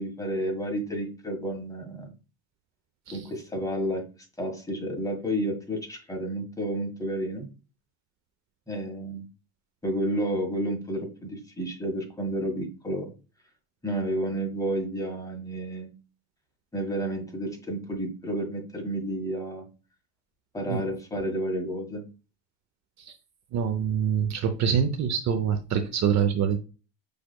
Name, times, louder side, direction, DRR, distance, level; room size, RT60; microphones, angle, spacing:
voice 1, 0.0-2.1 3.1-4.0 4.4-7.5 8.7-9.3 9.8-13.1 13.8-15.9 16.7-19.6 20.5-22.0, right 1 dB, 10° left, 2 dB, 1.6 m, -31 dB
voice 2, 23.5-26.6, right 7 dB, 45° right, 8 dB, 0.7 m, -25 dB
6.0 x 3.3 x 2.2 m, 0.32 s
supercardioid pair, 100°, 38 cm